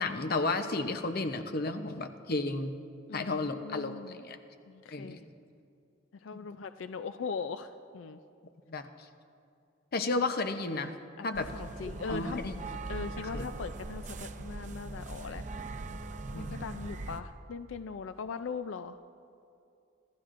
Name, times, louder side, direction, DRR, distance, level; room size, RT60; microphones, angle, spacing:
voice 1, 0.0-2.8 3.1-4.4 4.9-5.2 6.3-6.5 8.7-8.9 9.9-10.9 11.2-11.5 12.1-12.6 13.2-13.5 16.3-16.8, left 3 dB, 50° left, 8 dB, 0.7 m, -33 dB
voice 2, 3.1-4.2 4.7-5.2 6.2-8.2 11.2-11.3 11.5-12.4 12.9-15.4 16.3-19.0, left 5 dB, 85° left, 11 dB, 0.4 m, -40 dB
sound 1, 11.3-17.2, right 2 dB, 40° right, 0.6 m, -40 dB
25.5 x 13.5 x 2.5 m, 2.6 s
head